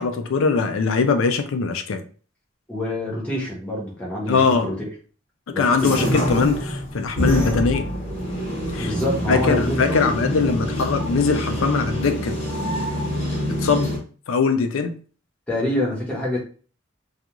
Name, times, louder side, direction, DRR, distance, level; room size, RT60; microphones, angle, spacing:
voice 1, 0.0-2.0 4.3-4.7 5.5-7.9 8.7-8.9 9.3-12.4 13.6-13.9 14.3-15.0, left 4 dB, 90° left, 0.4 m, -21 dB
voice 2, 2.7-4.9 5.5-6.2 8.8-10.3 15.5-16.4, left 1 dB, 5° left, 0.9 m, -26 dB
sound 1, 5.8-14.0, equal, 30° left, 1.0 m, -26 dB
2.4 x 2.4 x 2.9 m
head